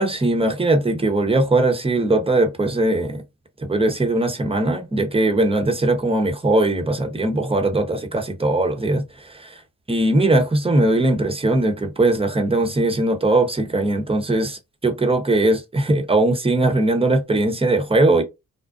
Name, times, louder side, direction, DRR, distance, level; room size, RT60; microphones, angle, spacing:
voice 1, 0.0-3.2 3.6-9.6 9.9-18.2, right 2 dB, 15° right, 0.9 m, -20 dB
2.4 x 2.1 x 2.4 m
supercardioid pair, 50°, 40 cm